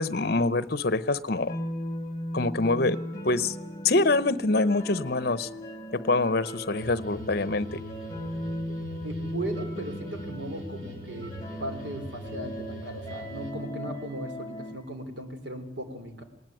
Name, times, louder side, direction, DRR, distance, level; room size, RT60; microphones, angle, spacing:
voice 1, 0.0-1.6 2.3-3.0 3.2-3.5 3.8-5.5 5.9-7.8, left 2 dB, 55° left, 15 dB, 0.8 m, -25 dB
sound 1, 1.5-14.7, equal, 15° left, 4.1 m, -37 dB
sound 2, 6.7-13.5, equal, 90° right, 4.4 m, -43 dB
voice 2, 9.0-11.3 11.6-16.2, right 1 dB, 70° right, 7 dB, 3.4 m, -37 dB
20.0 x 19.0 x 9.3 m, 0.88 s
head